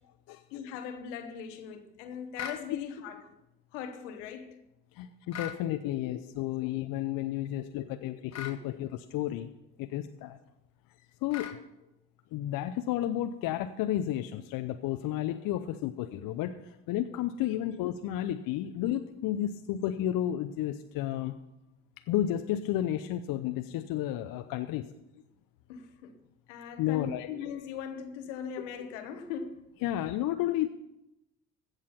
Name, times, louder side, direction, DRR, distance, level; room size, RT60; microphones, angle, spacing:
voice 1, 0.5-3.3 3.7-4.6 5.9-6.0 6.6-6.7 7.4-7.5 7.8-8.1 17.7-17.8 25.7-26.1 26.5-29.7 30.0-30.2, left 7 dB, 80° left, 1.1 m, -40 dB
sound 1, 2.4-2.6 5.3-5.6 8.3-8.6 11.3-11.6, left 8 dB, 45° left, 1.5 m, -39 dB
voice 2, 4.9-9.5 9.8-10.4 11.2-11.6 12.3-21.3 22.1-24.9 26.8-27.3 29.8-30.7, left 12 dB, 65° left, 0.7 m, -32 dB
16.0 x 6.6 x 5.6 m
hypercardioid pair, 50°, 36 cm